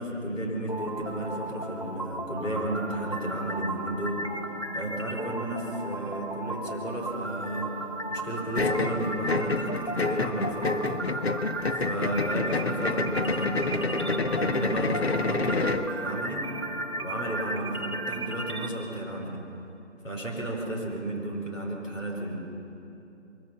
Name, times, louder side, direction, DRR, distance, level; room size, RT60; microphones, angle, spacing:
voice 1, 0.0-4.2 4.7-7.8 8.1-11.0 11.7-16.4 17.0-19.4 20.0-22.4, right 1 dB, 85° left, -1 dB, 5.4 m, -33 dB
sound 1, 0.7-18.7, right 2 dB, 25° left, 0.7 m, -35 dB
sound 2, 8.5-15.9, left 3 dB, 55° left, 1.0 m, -28 dB
22.0 x 16.0 x 7.6 m, 2.8 s
figure-of-eight pair, 170°, 37 cm